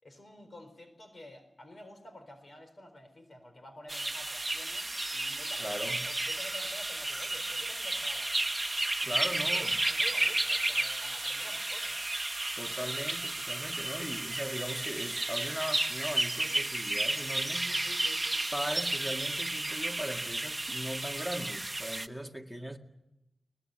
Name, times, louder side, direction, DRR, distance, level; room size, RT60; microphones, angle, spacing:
voice 1, 0.0-8.5 9.0-12.0 17.6-18.4, left 1 dB, 40° left, 7 dB, 4.3 m, -50 dB
sound 1, 3.9-22.1, right 2 dB, 25° right, 1.0 m, -32 dB
voice 2, 5.6-6.1 9.0-9.8 12.6-17.7 18.5-22.8, equal, 5° left, 4 dB, 2.1 m, -39 dB
23.5 x 20.5 x 7.9 m, 0.89 s
wide cardioid pair, 105°, 0 cm